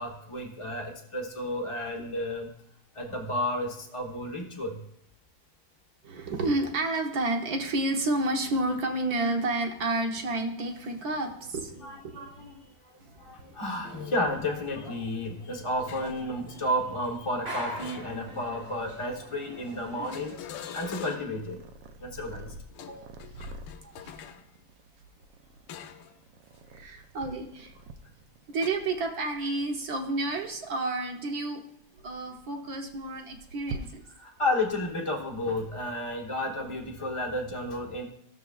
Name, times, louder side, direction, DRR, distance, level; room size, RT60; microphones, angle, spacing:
voice 1, 0.0-2.5 2.9-4.8 11.8-12.7 13.2-20.4 20.7-21.6 22.0-22.5 34.2-38.0, left 1 dB, 45° left, 0 dB, 0.4 m, -32 dB
voice 2, 6.0-12.5 13.0-13.6 16.0-16.1 22.8-23.4 23.8-24.1 26.7-27.7 28.5-31.6 32.0-34.0, right 2 dB, 55° right, 3 dB, 1.2 m, -31 dB
sound 1, 13.8-20.4, right 1 dB, 40° right, 1.0 m, -45 dB
sound 2, 15.9-16.2 17.8-18.5 20.1-21.5 22.7-24.4 25.7-26.2 26.5-26.8 28.6-28.7, left 9 dB, 75° left, 1.1 m, -43 dB
Purr, 17.0-35.7, right 3 dB, 70° right, 1.1 m, -48 dB
14.0 x 6.8 x 2.3 m, 0.73 s
omnidirectional pair, 2.4 m